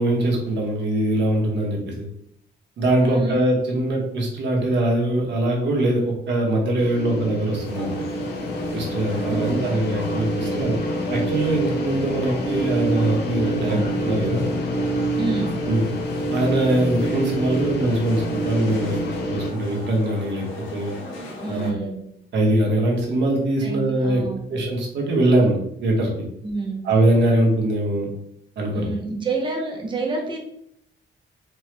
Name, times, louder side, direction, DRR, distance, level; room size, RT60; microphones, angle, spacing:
voice 1, 0.0-2.1 2.8-7.9 8.7-10.7 11.1-14.4 15.7-15.9 16.3-20.4 20.7-20.9 21.5-21.9 22.3-24.2 24.5-25.6 25.8-26.1 26.8-28.1 28.6-28.9, right 1 dB, 65° right, -1 dB, 1.2 m, -22 dB
voice 2, 3.0-3.4 9.1-10.0 10.4-10.7 13.6-13.9 15.2-15.6 21.4-22.0 23.6-24.6 26.4-26.8 28.7-30.4, right 3 dB, 25° right, 0 dB, 0.8 m, -29 dB
sound 1, 6.8-19.5, right 1 dB, 55° left, 0.7 m, -27 dB
sound 2, 7.6-21.7, left 1 dB, 75° left, 1.2 m, -36 dB
4.4 x 2.4 x 3.3 m, 0.73 s
wide cardioid pair, 165°, 20 cm